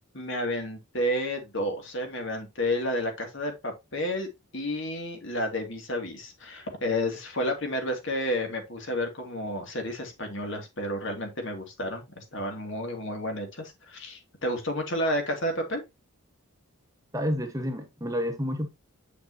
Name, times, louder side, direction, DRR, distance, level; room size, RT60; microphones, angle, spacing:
voice 1, 0.1-4.3 4.5-15.8, left 1 dB, 55° left, 2.5 m, -31 dB
voice 2, 17.1-18.7, equal, 15° right, 1.2 m, -29 dB
8.3 x 6.5 x 2.8 m
head